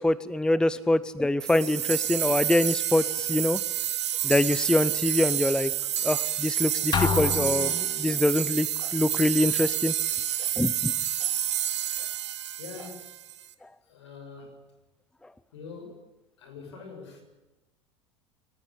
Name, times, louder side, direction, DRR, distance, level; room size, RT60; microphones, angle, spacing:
voice 1, 0.0-3.6 4.2-5.7 6.0-9.9 10.6-10.9 13.6-13.7, left 1 dB, 5° left, 0.7 m, -25 dB
sound 1, 1.4-13.4, right 11 dB, 70° right, 1.4 m, -29 dB
sound 2, 6.9-8.4, left 8 dB, 30° left, 1.4 m, -29 dB
voice 2, 12.6-13.1 13.8-14.6 15.5-16.1 16.4-17.2, left 5 dB, 65° left, 6.7 m, -44 dB
27.5 x 15.0 x 8.6 m
figure-of-eight pair, 70°, 15 cm